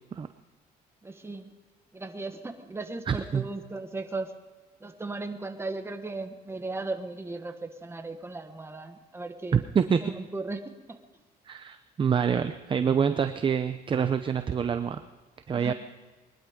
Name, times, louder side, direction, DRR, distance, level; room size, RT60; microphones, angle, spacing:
voice 1, 1.0-1.5 1.9-4.3 4.8-9.7 10.0-10.6 10.9-11.0 15.5-15.7, right 3 dB, 15° right, 6 dB, 1.5 m, -36 dB
voice 2, 3.1-3.4 9.5-10.0 11.5-15.0 15.5-15.7, right 7 dB, 30° right, 9 dB, 0.7 m, -26 dB
21.0 x 12.0 x 5.2 m, 1.3 s
cardioid pair, 110°, 17 cm